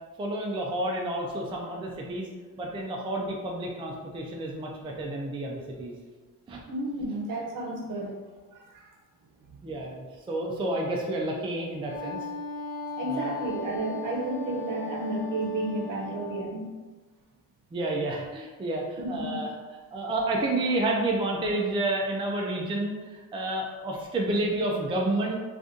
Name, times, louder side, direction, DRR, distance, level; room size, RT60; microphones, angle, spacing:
voice 1, 0.2-2.3 2.6-5.9 6.5-6.6 9.6-12.2 13.0-13.4 17.7-19.5 19.9-25.4, right 2 dB, 15° right, -1 dB, 0.3 m, -30 dB
voice 2, 6.7-8.2 8.5-8.9 13.0-16.7 19.0-19.4, right 1 dB, 65° right, 0 dB, 0.8 m, -32 dB
Wind instrument woodwind instrument, 11.9-16.5, left 2 dB, 65° left, 0.8 m, -38 dB
2.6 x 2.5 x 3.6 m, 1.3 s
cardioid pair, 130°, 35 cm